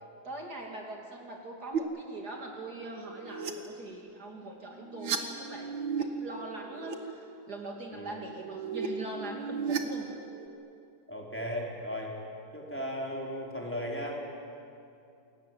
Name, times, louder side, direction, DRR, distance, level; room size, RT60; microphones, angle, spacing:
voice 1, 0.2-5.7 6.0-10.1, right 2 dB, 55° right, 1 dB, 3.1 m, -42 dB
sound 1, 1.7-1.8 2.8-3.5 4.7-6.0 6.4-6.9 8.1-10.5, right 6 dB, 70° right, 2.4 m, -35 dB
voice 2, 11.1-12.1 12.5-14.2, equal, 5° left, -2 dB, 4.6 m, -36 dB
28.5 x 22.0 x 9.4 m, 2.6 s
omnidirectional pair, 2.1 m